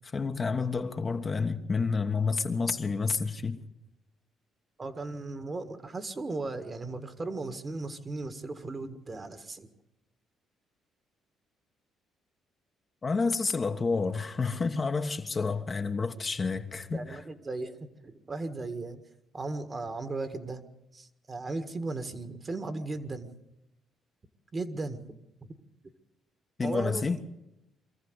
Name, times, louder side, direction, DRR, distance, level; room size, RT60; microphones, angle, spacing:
voice 1, 0.0-3.6 13.0-17.2 26.6-27.2, left 4 dB, 35° left, 1.3 m, -29 dB
voice 2, 4.8-9.7 16.9-19.0 19.3-20.6 20.9-23.3 24.5-25.0 25.4-25.5 26.6-27.1, right 3 dB, 35° right, 1.8 m, -36 dB
23.5 x 14.5 x 8.0 m
cardioid pair, 80°, 0 cm